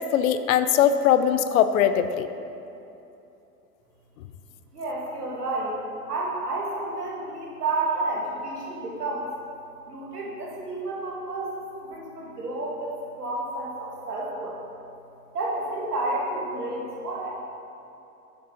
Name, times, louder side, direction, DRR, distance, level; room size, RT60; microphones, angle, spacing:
voice 1, 0.0-2.3, left 9 dB, 60° left, 11 dB, 0.7 m, -21 dB
voice 2, 4.7-5.8 6.1-9.3 9.9-12.9 13.2-14.6 15.3-17.3, right 2 dB, 80° right, -4 dB, 2.4 m, -30 dB
10.5 x 8.0 x 4.1 m, 2.9 s
figure-of-eight pair, 85°, 46 cm